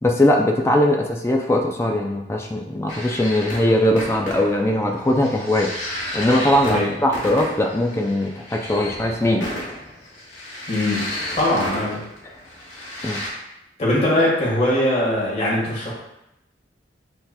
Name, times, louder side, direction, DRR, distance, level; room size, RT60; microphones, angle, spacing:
voice 1, 0.0-5.7 6.1-9.6 13.0-13.2, left 1 dB, 15° left, 1 dB, 0.3 m, -20 dB
sound 1, 2.9-13.3, left 1 dB, 70° left, 1.3 m, -33 dB
voice 2, 10.7-12.0 13.8-15.9, left 1 dB, 35° left, -6 dB, 1.5 m, -21 dB
7.6 x 2.8 x 2.2 m, 0.86 s
head